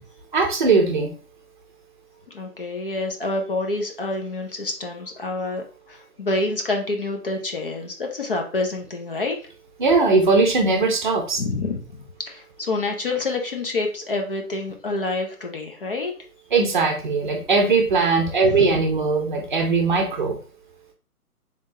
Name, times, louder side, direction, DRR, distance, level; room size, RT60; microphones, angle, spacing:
voice 1, 0.3-1.1 9.8-11.4 16.5-20.4, right 4 dB, 30° right, 2 dB, 0.6 m, -19 dB
voice 2, 2.3-9.4 11.4-11.8 12.2-16.1 18.4-18.7, left 2 dB, 40° left, 2 dB, 0.5 m, -27 dB
3.7 x 3.4 x 2.6 m, 0.39 s
hypercardioid pair, 145°, 46 cm